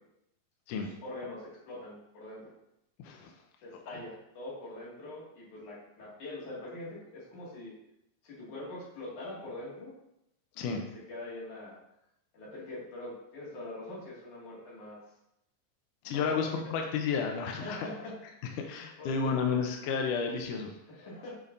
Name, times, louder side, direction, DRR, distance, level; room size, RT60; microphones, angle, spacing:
voice 1, 0.7-2.5 3.6-7.7 8.2-9.9 10.9-11.8 12.3-15.0 16.0-16.4 17.5-18.2 19.0-19.6 20.9-21.3, left 2 dB, 55° left, -6 dB, 3.4 m, -43 dB
voice 2, 16.0-17.9 18.6-20.7, left 5 dB, 80° left, 3 dB, 1.8 m, -31 dB
8.5 x 6.8 x 2.7 m, 0.82 s
omnidirectional pair, 4.5 m